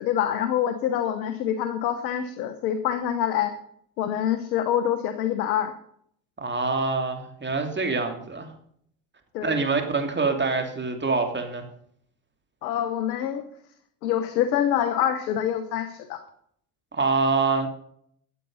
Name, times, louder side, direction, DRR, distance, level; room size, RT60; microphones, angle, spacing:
voice 1, 0.0-3.5 4.0-5.7 9.3-9.6 12.6-13.4 14.0-16.2, left 10 dB, 85° left, 9 dB, 1.1 m, -26 dB
voice 2, 6.4-8.5 9.4-11.6 16.9-17.7, right 4 dB, 20° right, 4 dB, 3.0 m, -25 dB
14.0 x 8.3 x 5.5 m, 0.67 s
hypercardioid pair, 65°, 48 cm